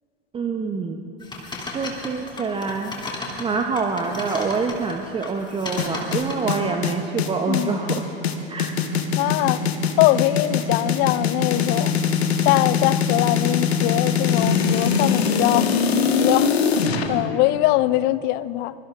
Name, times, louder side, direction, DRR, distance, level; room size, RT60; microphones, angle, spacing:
voice 1, 0.3-1.0 1.7-2.9 3.4-8.0 8.5-8.7, right 4 dB, 15° right, 0.8 m, -26 dB
sound 1, 1.2-4.9 5.2-6.5, left 2 dB, 15° left, 2.7 m, -34 dB
sound 2, 5.8-17.1, left 6 dB, 75° left, 1.5 m, -22 dB
voice 2, 7.5-7.8 9.2-12.0 12.4-15.7 16.2-16.5 17.1-18.7, left 17 dB, 35° left, 0.4 m, -22 dB
24.5 x 23.0 x 2.5 m
figure-of-eight pair, 90°, 32 cm